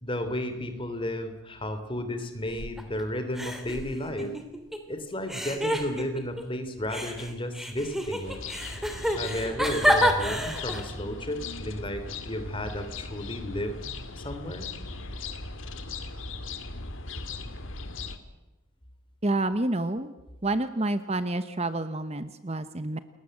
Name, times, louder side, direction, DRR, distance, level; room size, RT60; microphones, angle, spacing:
voice 1, 0.0-4.3 4.9-8.4 9.2-13.8 14.2-14.7, left 1 dB, 25° left, 9 dB, 3.1 m, -33 dB
sound 1, 2.5-3.0 3.3-4.8 5.3-6.4 6.9-10.9, equal, ahead, 3.0 m, -28 dB
sound 2, 8.2-18.2, left 3 dB, 65° left, 2.3 m, -38 dB
voice 2, 19.2-20.1 20.4-23.0, right 2 dB, 30° right, 11 dB, 1.0 m, -28 dB
29.0 x 21.5 x 7.8 m, 1.1 s
head